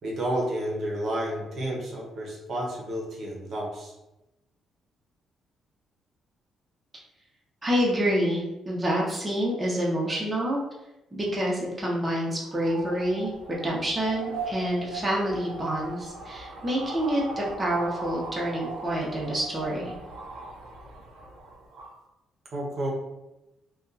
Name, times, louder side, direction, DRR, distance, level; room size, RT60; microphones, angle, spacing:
voice 1, 0.0-3.9 22.5-22.9, right 1 dB, 55° right, -3 dB, 0.7 m, -31 dB
voice 2, 7.6-10.6 11.1-19.9, equal, 20° right, -4 dB, 0.7 m, -27 dB
sound 1, 12.2-22.0, right 3 dB, 90° right, 0.6 m, -39 dB
2.6 x 2.3 x 2.4 m, 0.95 s
cardioid pair, 90°, 0 cm